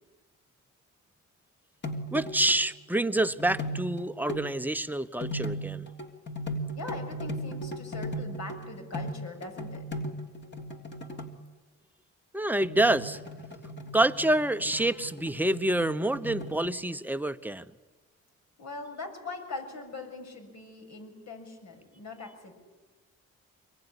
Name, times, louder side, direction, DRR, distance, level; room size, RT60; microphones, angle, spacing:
sound 1, 1.8-2.7 3.2-4.6 5.2-11.3 12.6-16.7, equal, 35° left, 3.3 m, -37 dB
voice 1, 2.1-5.9 12.3-13.2 13.9-17.7, right 1 dB, 5° right, 11 dB, 1.0 m, -27 dB
voice 2, 6.7-10.0 18.6-22.5, left 3 dB, 65° left, 4 dB, 6.7 m, -41 dB
25.5 x 22.5 x 10.0 m, 1.2 s
cardioid pair, 90°, 30 cm